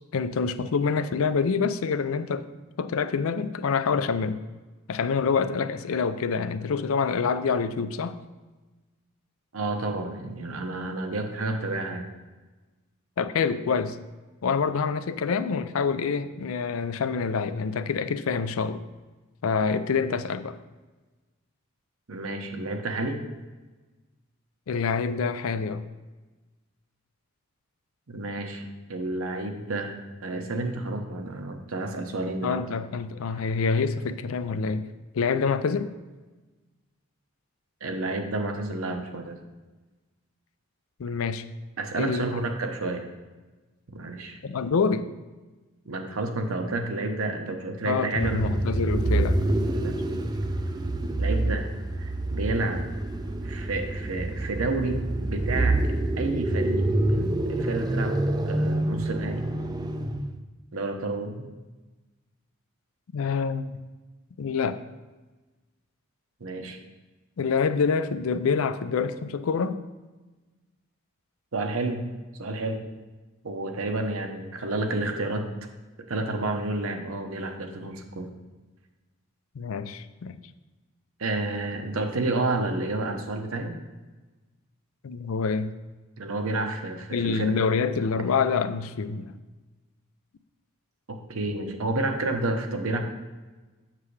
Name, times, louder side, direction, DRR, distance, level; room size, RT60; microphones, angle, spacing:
voice 1, 0.1-2.5 2.8-4.4 4.9-8.2 13.2-14.0 14.4-18.8 19.4-20.6 24.7-25.8 32.4-34.8 35.1-35.9 41.0-41.4 42.0-42.4 44.4-45.1 47.8-49.5 63.1-63.8 64.4-64.8 67.4-69.8 79.6-80.4 85.0-85.7 87.1-89.3, left 5 dB, 75° left, 12 dB, 0.4 m, -26 dB
voice 2, 9.5-12.1 22.1-23.2 28.1-32.6 37.8-39.3 41.8-43.1 43.9-44.4 45.9-48.6 49.8-50.2 51.2-51.7 52.0-52.8 53.4-55.8 56.2-59.5 60.7-61.5 66.4-66.8 71.5-72.1 72.4-72.8 73.4-75.5 76.1-78.3 81.2-83.7 86.2-87.6 91.1-93.0, right 2 dB, 80° right, 5 dB, 0.9 m, -30 dB
sound 1, 48.2-60.4, right 2 dB, 20° right, 0.4 m, -27 dB
7.4 x 6.9 x 3.3 m, 1.2 s
head